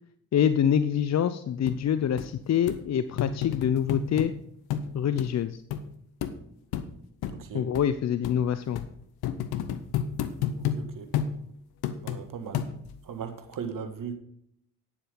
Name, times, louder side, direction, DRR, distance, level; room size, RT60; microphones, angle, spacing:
voice 1, 0.3-4.3 4.9-5.6 7.5-8.8, left 9 dB, 45° left, 13 dB, 0.6 m, -25 dB
sound 1, 1.7-1.8 2.2-2.3 2.7-2.8 3.2-4.3 4.7-4.9 5.2-5.3 5.7-5.8 6.2-6.3 6.7-6.9 7.2-7.4 7.7-7.9 8.2-8.4 8.8-8.9 9.2-10.8 11.1-11.3 11.8-12.2 12.5-13.0 13.5-13.6, left 9 dB, 75° left, 0.9 m, -30 dB
voice 2, 10.6-11.1 12.0-12.6 13.1-14.2, right 6 dB, 60° right, 10 dB, 1.6 m, -37 dB
9.9 x 7.1 x 5.4 m, 0.71 s
hypercardioid pair, 45°, 38 cm